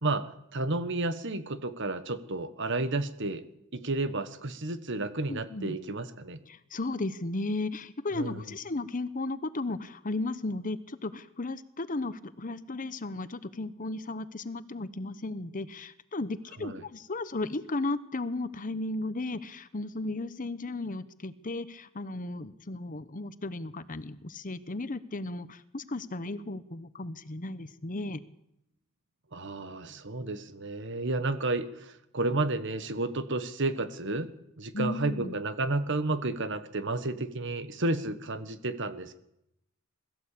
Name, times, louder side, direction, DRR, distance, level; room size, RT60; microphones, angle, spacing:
voice 1, 0.0-3.4 3.7-6.4 8.1-8.4 16.6-16.8 29.3-34.3 34.6-39.2, right 2 dB, 60° right, 12 dB, 1.5 m, -31 dB
voice 2, 5.3-5.8 6.5-28.2 34.7-35.4, left 2 dB, 40° left, 14 dB, 1.0 m, -35 dB
21.5 x 14.5 x 8.5 m, 0.82 s
head